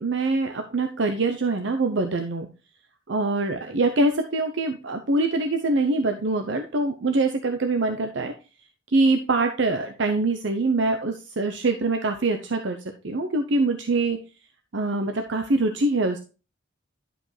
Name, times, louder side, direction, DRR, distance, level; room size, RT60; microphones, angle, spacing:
voice 1, 0.0-2.5 3.1-8.3 8.9-12.8 13.0-14.2 14.7-16.2, right 2 dB, 65° right, 5 dB, 0.7 m, -24 dB
11.0 x 5.1 x 3.2 m, 0.32 s
head